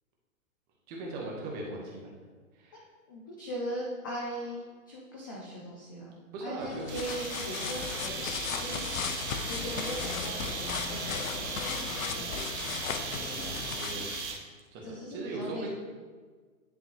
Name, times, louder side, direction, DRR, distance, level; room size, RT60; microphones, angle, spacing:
voice 1, 0.9-2.1 2.5-2.9 6.3-6.9 13.1-14.1 14.7-15.7, right 2 dB, 20° right, -2 dB, 1.3 m, -39 dB
voice 2, 3.1-6.2 6.4-8.8 9.4-12.7 14.8-15.7, equal, 15° left, -3 dB, 0.4 m, -40 dB
sound 1, 6.6-14.4, left 6 dB, 70° left, 0.7 m, -36 dB
sound 2, 6.9-14.6, right 5 dB, 55° right, 1.1 m, -38 dB
10.0 x 3.7 x 3.0 m, 1.5 s
hypercardioid pair, 140°, 41 cm